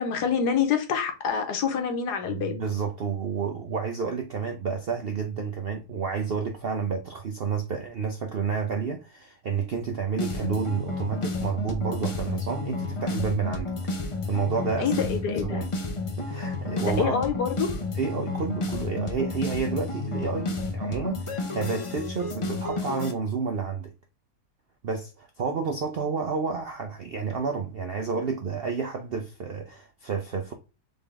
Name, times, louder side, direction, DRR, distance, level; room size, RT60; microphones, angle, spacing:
voice 1, 0.0-2.6 14.8-15.6 16.8-17.8, left 6 dB, 80° left, 1.5 m, -26 dB
voice 2, 2.3-13.8 14.2-15.1 15.4-15.7 16.2-17.1 18.0-23.9 24.8-30.5, right 5 dB, 65° right, 0.5 m, -30 dB
sound 1, 10.2-23.1, left 3 dB, 50° left, 0.3 m, -31 dB
3.9 x 3.6 x 3.4 m
omnidirectional pair, 1.7 m